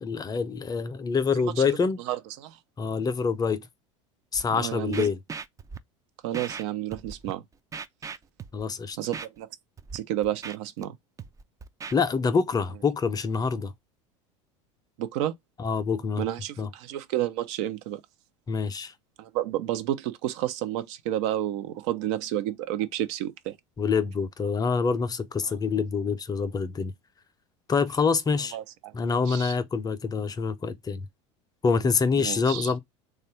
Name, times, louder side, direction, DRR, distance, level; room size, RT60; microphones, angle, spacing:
voice 1, 0.0-2.0 2.8-3.7 4.3-5.2 8.5-9.0 11.9-13.7 15.6-16.3 16.6-16.7 18.5-18.9 23.8-26.9 27.7-28.6 28.9-31.1 31.6-32.8, left 5 dB, 25° left, 0.6 m, -26 dB
voice 2, 1.4-1.8 2.1-2.6 4.5-5.1 6.2-7.4 9.0-9.5 9.9-10.9 15.0-15.4 16.2-18.0 19.2-23.5 28.5-28.9 29.3-29.6 32.2-32.7, right 12 dB, 70° right, 0.6 m, -31 dB
Scratching (performance technique), 4.3-4.4 4.9-5.8 6.3-6.6 6.9-7.3 7.7-8.6 9.1-9.3 9.8-10.0 10.2-10.9 11.2-12.0, right 6 dB, 20° right, 0.4 m, -38 dB
3.3 x 2.4 x 4.2 m
hypercardioid pair, 90°, 16 cm